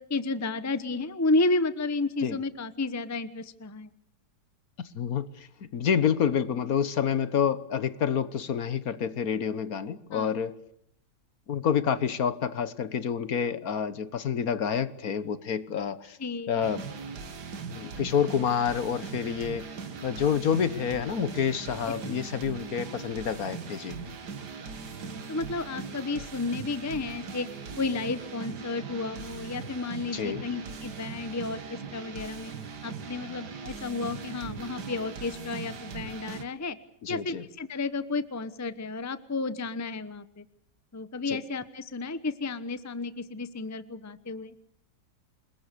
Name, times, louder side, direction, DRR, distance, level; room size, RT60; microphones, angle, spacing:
voice 1, 0.1-3.9 10.1-10.4 16.2-16.6 24.9-27.5 27.8-32.5 32.8-36.8 37.1-40.5 40.9-44.5, left 3 dB, 15° left, 14 dB, 0.8 m, -32 dB
voice 2, 4.9-5.5 5.7-10.5 11.5-16.2 16.5-16.8 17.7-19.7 20.0-23.9 30.1-30.4 37.0-37.4 41.3-41.4, left 7 dB, 60° left, 15 dB, 1.6 m, -28 dB
sound 1, 16.6-36.4, right 5 dB, 80° right, 2.3 m, -40 dB
28.0 x 21.5 x 6.7 m, 0.69 s
omnidirectional pair, 1.8 m